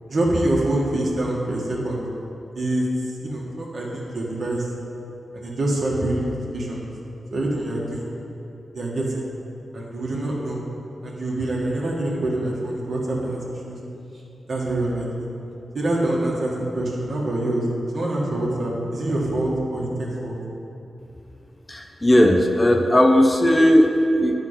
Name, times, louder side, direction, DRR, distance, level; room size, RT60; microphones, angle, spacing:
voice 1, 0.1-2.0 2.5-2.9 3.2-4.7 5.3-6.9 7.3-8.1 8.7-9.3 9.7-10.6 11.0-13.8 14.5-15.3 15.7-17.6 17.9-20.3, right 1 dB, 55° right, -3 dB, 1.7 m, -25 dB
voice 2, 21.7-24.3, left 1 dB, 20° left, 3 dB, 0.7 m, -17 dB
9.9 x 4.4 x 5.7 m, 2.9 s
cardioid pair, 80°, 0 cm